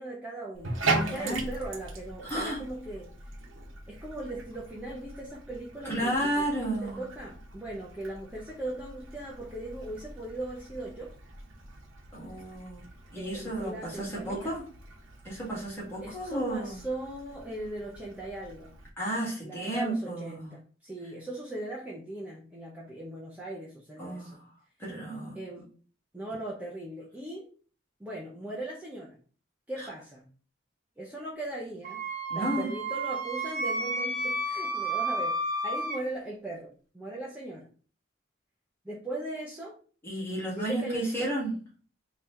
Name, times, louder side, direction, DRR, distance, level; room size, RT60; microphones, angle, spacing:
voice 1, 0.0-3.1 3.9-6.4 6.8-11.1 13.2-14.5 16.0-18.7 19.4-24.4 25.3-25.7 26.1-27.5 28.0-29.2 29.7-30.3 31.0-32.0 32.3-35.4 35.6-37.7 38.8-39.8 40.5-41.2, right 2 dB, 10° right, -5 dB, 0.7 m, -39 dB
Bathtub (filling or washing), 0.5-18.9, right 3 dB, 85° right, 0.9 m, -39 dB
voice 2, 1.1-1.5 2.2-2.6 5.8-7.0 12.1-12.9 13.1-14.7 15.2-16.8 19.0-20.5 24.0-24.4 24.8-25.4 29.8-29.9 32.3-32.7 40.0-41.5, right 1 dB, 10° left, -5 dB, 1.8 m, -32 dB
Wind instrument woodwind instrument, 31.8-36.0, right 1 dB, 45° right, 0.9 m, -31 dB
4.0 x 3.0 x 3.2 m, 0.40 s
head